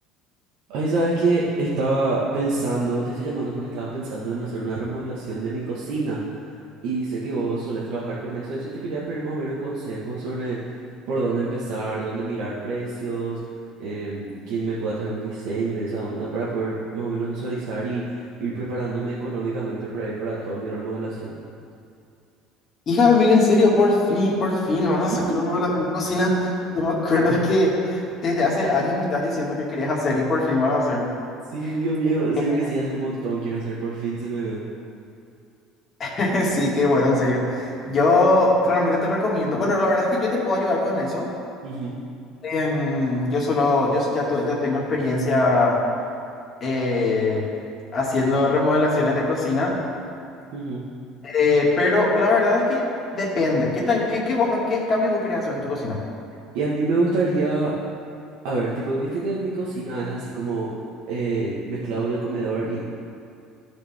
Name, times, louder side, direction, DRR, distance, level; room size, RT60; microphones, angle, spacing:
voice 1, 0.7-6.2 6.5-10.8 11.1-13.4 13.8-21.3 25.1-25.2 31.5-34.6 41.6-42.0 50.5-50.8 56.5-57.7 58.4-60.7 61.1-62.8, right 3 dB, 75° right, -7 dB, 1.4 m, -27 dB
voice 2, 22.9-31.0 36.0-41.3 42.4-45.8 46.6-47.4 47.9-49.7 51.2-52.8 53.1-56.0, left 2 dB, 35° left, -5 dB, 2.2 m, -21 dB
14.0 x 5.1 x 3.6 m, 2.4 s
cardioid pair, 120°, 0 cm